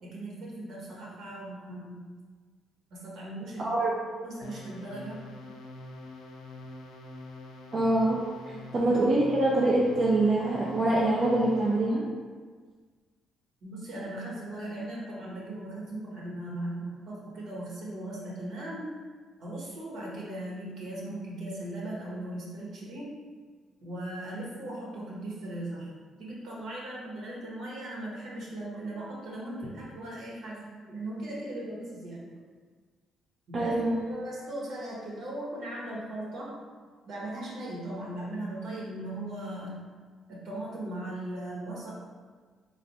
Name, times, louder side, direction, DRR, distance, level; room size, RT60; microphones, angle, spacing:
voice 1, 0.0-2.0 2.9-3.9 4.2-5.2 13.6-18.9 19.4-23.2 23.8-25.9 26.2-32.3 33.5-33.8 34.1-36.6 37.0-39.9 40.3-41.9, right 1 dB, 75° right, -5 dB, 1.2 m, -38 dB
voice 2, 3.6-3.9 7.7-8.2 8.5-12.0 33.5-34.0, right 2 dB, 45° right, -4 dB, 0.5 m, -25 dB
sound 1, 4.4-12.0, left 2 dB, 90° left, 0.5 m, -45 dB
3.3 x 2.4 x 4.2 m, 1.5 s
cardioid pair, 90°, 0 cm